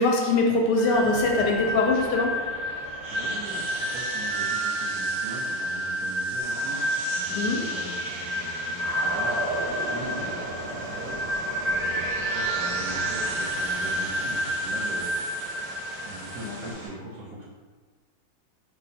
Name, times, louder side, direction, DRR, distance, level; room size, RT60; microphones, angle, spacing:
voice 1, 0.0-2.3 7.3-7.6 16.4-16.6, left 3 dB, 75° left, 0 dB, 1.1 m, -22 dB
sound 1, 0.8-16.7, right 1 dB, 90° right, 1.4 m, -29 dB
voice 2, 3.1-6.8 7.1-15.1 16.0-17.4, right 1 dB, 70° right, -5 dB, 0.9 m, -41 dB
Vehicle, 6.4-16.9, right 1 dB, 45° right, 0.6 m, -43 dB
2.9 x 2.3 x 4.1 m, 1.4 s
omnidirectional pair, 1.9 m